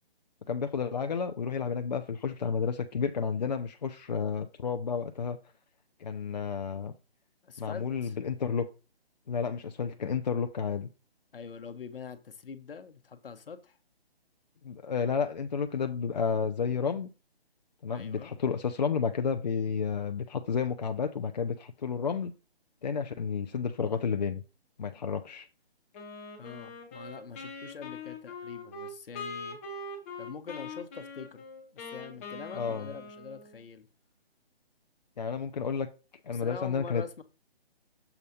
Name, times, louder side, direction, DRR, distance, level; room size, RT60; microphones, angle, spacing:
voice 1, 0.5-5.4 6.0-6.9 7.6-8.7 9.3-10.9 14.6-17.1 17.8-22.3 22.8-24.4 24.8-25.5 32.5-32.9 35.2-35.9 36.2-37.0, left 6 dB, 45° left, 0.6 m, -31 dB
voice 2, 7.4-8.2 11.3-13.8 17.9-18.3 26.4-29.6 30.2-31.4 31.7-33.9 36.3-37.2, left 6 dB, 60° left, 1.2 m, -44 dB
Wind instrument woodwind instrument, 25.9-33.6, left 3 dB, 15° left, 1.0 m, -42 dB
7.2 x 4.1 x 5.2 m
hypercardioid pair, 160°, 31 cm